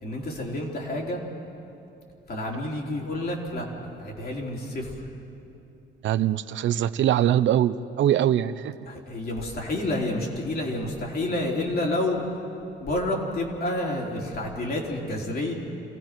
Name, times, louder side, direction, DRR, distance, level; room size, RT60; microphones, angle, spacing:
voice 1, 0.0-1.2 2.3-5.1 8.9-12.2 12.8-15.5, left 1 dB, 50° left, -1 dB, 3.9 m, -29 dB
voice 2, 6.0-8.8, right 11 dB, 70° right, 14 dB, 0.6 m, -22 dB
27.0 x 16.5 x 6.0 m, 2.8 s
cardioid pair, 90°, 20 cm